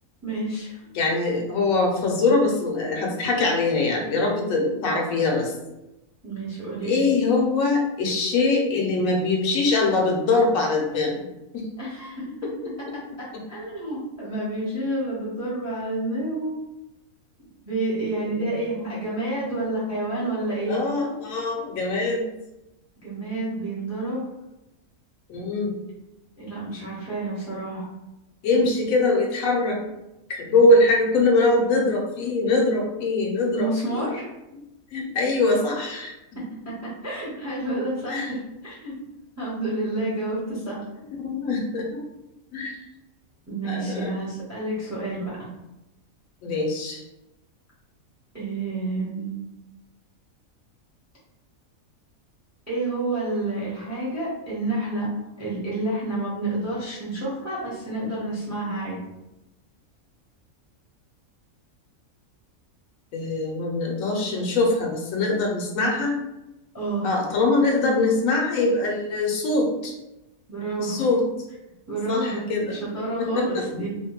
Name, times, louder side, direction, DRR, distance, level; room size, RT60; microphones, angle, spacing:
voice 1, 0.2-0.8 6.2-7.1 11.8-12.5 13.2-16.5 17.7-20.8 23.0-24.2 26.4-27.8 33.5-34.3 36.4-38.4 38.6-38.9 39.4-40.8 43.5-45.5 48.3-49.4 52.7-55.1 55.4-59.0 66.7-67.1 70.5-71.0 71.9-73.9, right 2 dB, 15° right, -7 dB, 0.5 m, -29 dB
voice 2, 0.9-5.5 6.8-11.2 11.5-11.6 18.4-18.6 20.7-22.2 25.3-25.8 28.4-29.8 30.3-34.1 34.9-36.1 38.1-38.3 41.2-42.0 42.5-42.8 43.6-44.1 46.4-47.0 63.1-66.1 67.0-69.9 70.8-71.2 72.1-72.6 73.2-73.6, left 2 dB, 70° left, 0 dB, 0.9 m, -23 dB
2.7 x 2.1 x 2.9 m, 0.94 s
omnidirectional pair, 1.5 m